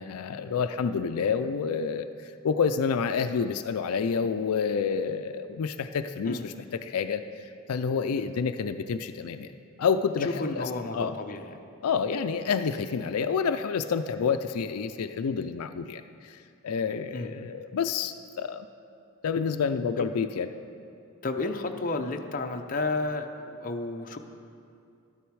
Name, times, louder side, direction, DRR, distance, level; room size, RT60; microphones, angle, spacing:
voice 1, 0.0-7.2 7.7-9.5 9.8-10.6 10.9-11.1 11.8-16.4 16.6-18.7 19.2-20.5, left 6 dB, 80° left, 9 dB, 0.4 m, -28 dB
voice 2, 10.2-11.5 17.1-17.3 20.0-20.1 21.2-24.2, left 3 dB, 40° left, 4 dB, 0.6 m, -32 dB
12.0 x 10.0 x 4.7 m, 2.5 s
head